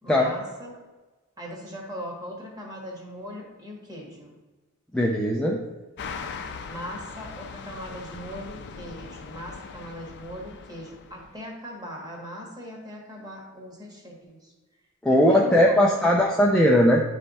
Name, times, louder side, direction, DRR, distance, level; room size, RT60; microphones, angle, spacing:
voice 1, 0.0-0.8 1.4-4.3 6.7-14.5 15.1-16.1, equal, 20° right, -1 dB, 1.5 m, -39 dB
voice 2, 4.9-5.6 15.0-17.0, equal, 5° left, -3 dB, 0.5 m, -19 dB
sound 1, 6.0-11.4, left 5 dB, 50° left, 0.5 m, -40 dB
9.8 x 3.3 x 4.1 m, 1.2 s
head